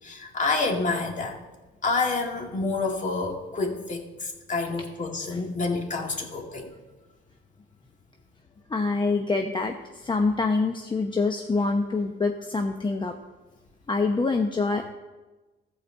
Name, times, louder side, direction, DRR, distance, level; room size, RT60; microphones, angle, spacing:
voice 1, 0.0-1.4 1.8-6.7, left 3 dB, 40° left, 1 dB, 2.1 m, -28 dB
voice 2, 8.7-13.1 13.9-14.9, left 3 dB, 25° left, 4 dB, 0.8 m, -25 dB
14.0 x 5.0 x 7.5 m, 1.2 s
cardioid pair, 90°, 20 cm